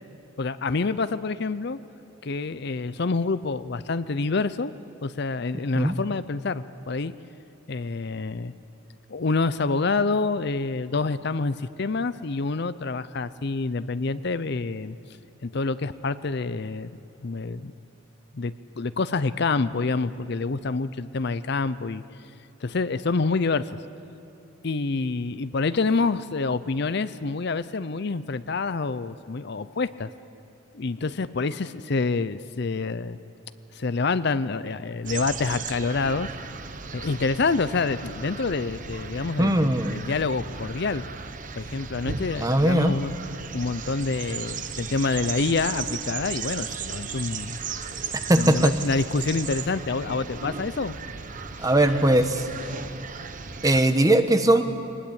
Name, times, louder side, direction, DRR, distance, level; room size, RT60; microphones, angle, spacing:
voice 1, 0.4-1.8 2.2-4.7 5.0-7.1 7.7-8.5 9.1-15.0 15.4-17.0 17.2-17.7 18.3-22.0 22.6-23.7 24.6-30.1 30.7-33.2 33.7-36.3 36.9-41.0 41.6-43.2 43.5-47.6 48.4-51.0 51.6-51.7, left 3 dB, 50° left, 14 dB, 0.6 m, -27 dB
sound 1, 35.1-53.8, right 5 dB, 40° right, 0.9 m, -36 dB
voice 2, 39.4-40.0 42.4-43.0 48.3-48.7 51.6-52.5 53.6-54.6, right 1 dB, 15° right, 8 dB, 1.0 m, -20 dB
23.5 x 20.0 x 8.8 m, 2.8 s
head